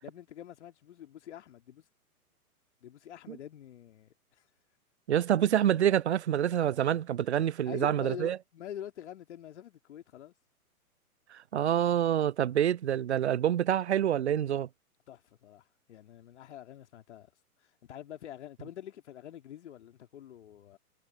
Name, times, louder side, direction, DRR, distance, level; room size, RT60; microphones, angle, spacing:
voice 1, 0.0-1.9 2.8-4.4 7.7-10.3 15.1-17.3 17.6-20.8, left 11 dB, 50° left, 2.8 m, -46 dB
voice 2, 5.1-8.4 11.3-14.7, right 10 dB, 50° right, 0.5 m, -27 dB
figure-of-eight pair, 115°, 46 cm